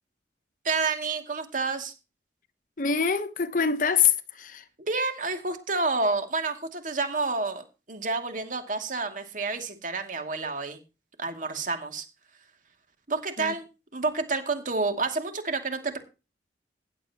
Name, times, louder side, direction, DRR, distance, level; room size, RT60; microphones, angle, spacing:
voice 1, 0.6-1.9 4.8-10.8 11.2-12.0 13.1-13.6 13.9-16.0, right 3 dB, 45° right, 2.5 m, -29 dB
voice 2, 2.8-4.6 13.4-13.5, left 7 dB, 50° left, 1.0 m, -25 dB
15.5 x 10.0 x 2.9 m
head